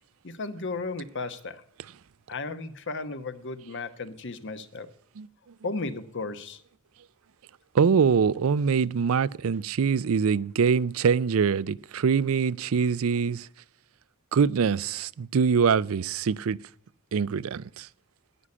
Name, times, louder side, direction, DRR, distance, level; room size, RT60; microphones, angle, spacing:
voice 1, 0.2-1.6 2.3-4.9 5.6-6.6, left 3 dB, 60° left, 1.1 m, -34 dB
voice 2, 7.7-13.5 14.3-16.6 17.1-17.9, right 6 dB, 75° right, 0.4 m, -24 dB
11.0 x 9.8 x 8.6 m
head